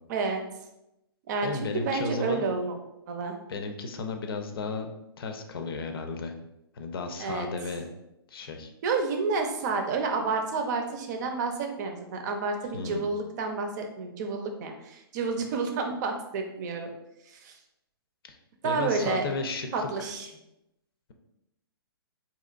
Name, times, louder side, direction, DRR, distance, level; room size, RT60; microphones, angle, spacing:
voice 1, 0.1-0.4 1.3-2.7 3.1-3.4 7.2-7.5 8.8-16.9 17.3-17.5 18.6-19.3 19.7-20.3, right 4 dB, 45° right, 4 dB, 0.6 m, -30 dB
voice 2, 1.4-2.4 3.5-4.9 5.2-6.3 6.7-7.9 8.3-8.7 12.7-13.1 18.3-18.4 18.6-20.1, left 3 dB, 65° left, 5 dB, 0.6 m, -34 dB
4.0 x 3.0 x 2.4 m, 0.88 s
hypercardioid pair, 135°, 13 cm